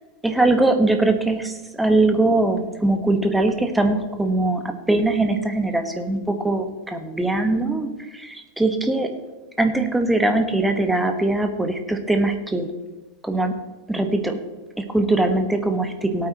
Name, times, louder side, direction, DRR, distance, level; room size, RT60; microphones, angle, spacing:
voice 1, 0.2-9.1 9.6-12.7 13.2-13.5 13.9-14.4 14.8-16.3, right 2 dB, 5° right, 6 dB, 1.3 m, -21 dB
17.5 x 8.8 x 3.0 m, 1.2 s
figure-of-eight pair, 90°, 0 cm